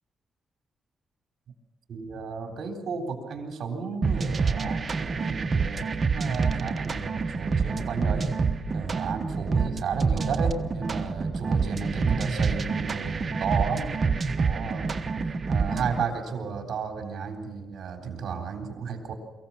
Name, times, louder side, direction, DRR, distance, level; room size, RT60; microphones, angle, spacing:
voice 1, 1.9-8.3 8.7-14.0 14.4-14.9 15.5-19.1, right 5 dB, 65° right, 4 dB, 3.7 m, -33 dB
sound 1, 4.0-16.0, right 4 dB, 40° right, 1.2 m, -27 dB
23.5 x 15.5 x 7.2 m, 1.2 s
cardioid pair, 105°, 0 cm